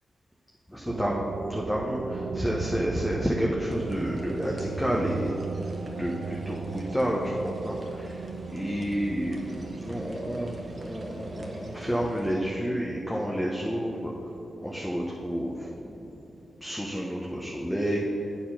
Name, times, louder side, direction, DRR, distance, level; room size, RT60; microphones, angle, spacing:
voice 1, 0.7-5.4 5.8-8.2 8.5-14.1 14.6-16.2 16.6-18.1, equal, 5° left, -3 dB, 0.8 m, -30 dB
sound 1, 0.9-17.1, right 4 dB, 60° right, 0.3 m, -38 dB
sound 2, 3.6-12.3, right 1 dB, 35° right, 1.2 m, -46 dB
8.2 x 4.7 x 5.7 m, 2.9 s
cardioid pair, 90°, 0 cm